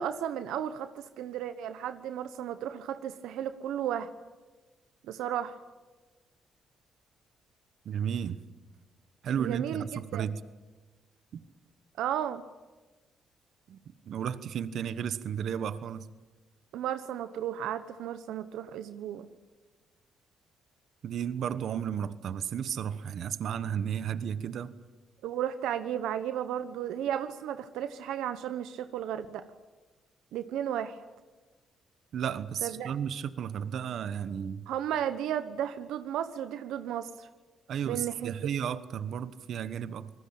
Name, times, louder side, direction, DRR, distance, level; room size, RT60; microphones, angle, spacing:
voice 1, 0.0-4.1 5.1-5.6 9.4-9.9 10.1-10.3 12.0-12.4 16.7-19.3 25.2-29.4 30.3-31.0 32.6-32.9 34.7-37.3 37.8-38.3, right 10 dB, 85° right, 11 dB, 1.1 m, -34 dB
voice 2, 7.8-8.4 9.2-10.4 13.7-13.8 14.1-16.1 21.0-24.7 32.1-34.6 37.7-40.1, right 8 dB, 65° right, 14 dB, 1.3 m, -33 dB
27.0 x 19.5 x 8.8 m, 1.2 s
cardioid pair, 90°, 0 cm